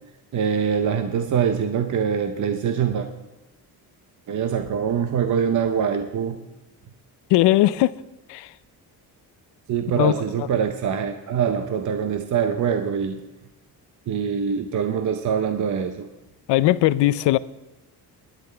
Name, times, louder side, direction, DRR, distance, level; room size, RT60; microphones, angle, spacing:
voice 1, 0.0-3.1 4.3-6.4 9.7-13.2 14.1-16.1, right 7 dB, 45° right, 0.8 m, -24 dB
voice 2, 7.3-7.9 8.3-8.5 10.0-10.1 16.5-17.4, left 15 dB, 85° left, 0.5 m, -18 dB
20.5 x 10.5 x 3.4 m
cardioid pair, 150°, 40 cm